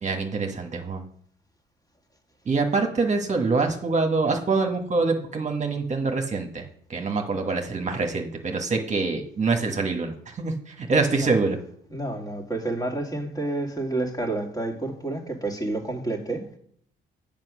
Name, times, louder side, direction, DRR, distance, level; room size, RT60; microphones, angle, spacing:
voice 1, 0.0-1.0 2.5-6.6 6.9-11.6, right 3 dB, 35° right, 3 dB, 1.4 m, -25 dB
voice 2, 11.9-16.5, right 2 dB, 20° left, 2 dB, 2.2 m, -29 dB
7.6 x 5.3 x 6.2 m, 0.64 s
cardioid pair, 90°, 20 cm